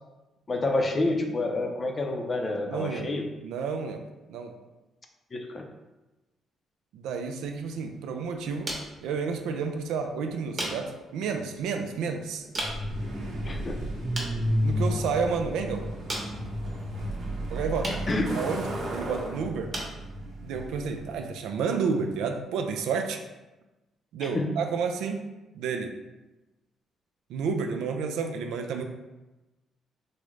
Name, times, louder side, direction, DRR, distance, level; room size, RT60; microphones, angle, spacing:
voice 1, 0.5-3.3 5.3-5.6 13.5-13.8 17.9-18.3 24.2-24.5, left 2 dB, 35° left, 3 dB, 0.5 m, -28 dB
voice 2, 2.7-3.1 3.4-4.6 6.9-8.7 9.0-12.4 14.6-15.9 17.5-18.0 18.3-19.7 20.2-23.2 24.1-25.3 25.6-25.9 27.3-28.8, right 5 dB, 85° right, 5 dB, 0.3 m, -31 dB
small single plastic impacts, 7.4-22.5, right 1 dB, 40° right, 0.9 m, -42 dB
Truck, 12.6-21.3, equal, 70° right, 0.8 m, -32 dB
3.6 x 2.1 x 3.1 m, 1.1 s
cardioid pair, 90°, 0 cm